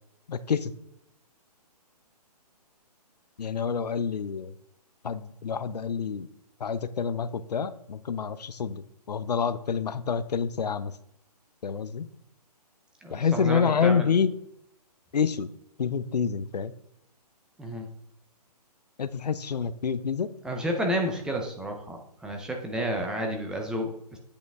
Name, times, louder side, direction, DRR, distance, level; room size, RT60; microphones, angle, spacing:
voice 1, 0.3-0.7 3.4-4.5 5.0-6.3 6.6-10.9 11.6-12.1 13.1-14.3 15.1-15.5 15.8-16.7 19.0-20.3, left 6 dB, 80° left, 14 dB, 0.6 m, -27 dB
voice 2, 13.0-14.1 17.6-17.9 20.4-24.2, right 1 dB, 5° right, 2 dB, 0.5 m, -31 dB
8.4 x 5.0 x 3.5 m, 0.76 s
hypercardioid pair, 140°, 21 cm